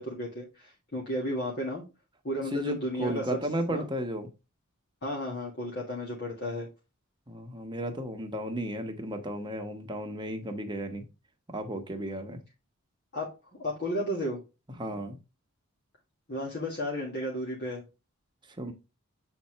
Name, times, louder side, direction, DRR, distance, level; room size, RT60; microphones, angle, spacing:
voice 1, 0.0-1.8 2.2-3.4 3.7-3.9 5.0-6.7 13.1-13.3 13.6-14.4 16.3-17.8, equal, 50° left, 1.9 m, -33 dB
voice 2, 2.5-4.3 7.3-11.0 11.5-12.4 14.8-15.2 18.6-18.7, right 1 dB, 20° right, 1.1 m, -34 dB
7.7 x 4.3 x 3.2 m
head